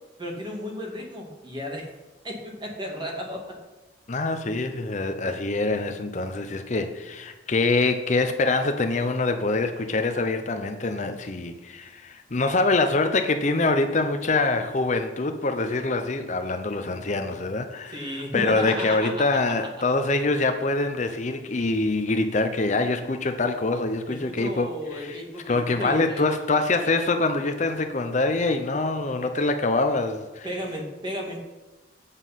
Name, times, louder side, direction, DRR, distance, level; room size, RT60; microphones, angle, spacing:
voice 1, 0.2-1.9 2.2-3.4 17.9-19.1 24.1-26.3 30.4-31.4, equal, 25° right, 0 dB, 2.0 m, -33 dB
voice 2, 4.1-24.7 24.9-25.2 25.5-30.5, left 3 dB, 40° left, 7 dB, 0.6 m, -25 dB
8.2 x 7.2 x 5.7 m, 1.1 s
head